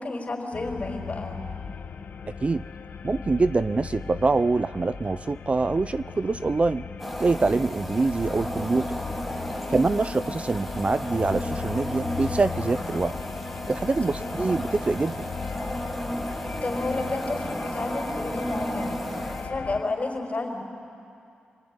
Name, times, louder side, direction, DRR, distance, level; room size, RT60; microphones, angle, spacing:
voice 1, 0.0-1.4 9.6-9.9 14.1-14.3 16.6-19.0 19.4-20.6, left 2 dB, 45° left, 2 dB, 4.8 m, -31 dB
sound 1, 0.5-19.8, left 6 dB, 70° left, 1.3 m, -37 dB
voice 2, 3.0-6.8 7.2-9.0 9.7-13.2 13.7-15.3, right 3 dB, 35° right, 14 dB, 0.5 m, -25 dB
sound 2, 7.0-19.5, equal, ahead, 2.4 m, -34 dB
28.0 x 20.5 x 9.8 m, 2.6 s
cardioid pair, 65°, 3 cm